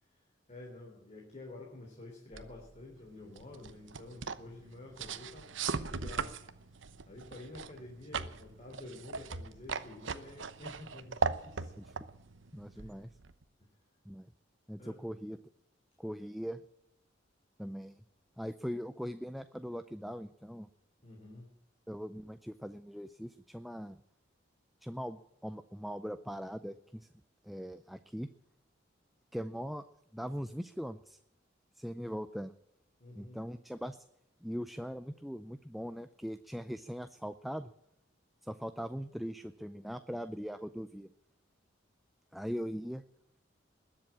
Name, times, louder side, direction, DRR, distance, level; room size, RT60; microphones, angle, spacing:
voice 1, 0.0-6.4 6.7-11.7 12.7-13.1 13.6-13.7 14.8-15.0 21.0-21.5 33.0-33.4, left 2 dB, 35° left, 0 dB, 3.3 m, -50 dB
sound 1, 2.3-13.4, right 5 dB, 85° right, 0.9 m, -39 dB
voice 2, 12.5-13.1 14.1-14.3 14.7-15.4 16.0-16.6 17.6-17.9 18.4-20.7 21.9-24.0 24.8-27.1 27.4-28.3 29.3-29.8 30.1-31.2 31.8-32.5 33.1-34.0 34.4-37.7 38.4-41.1 42.3-43.0, equal, ahead, 10 dB, 0.5 m, -40 dB
21.0 x 7.6 x 8.6 m, 0.83 s
head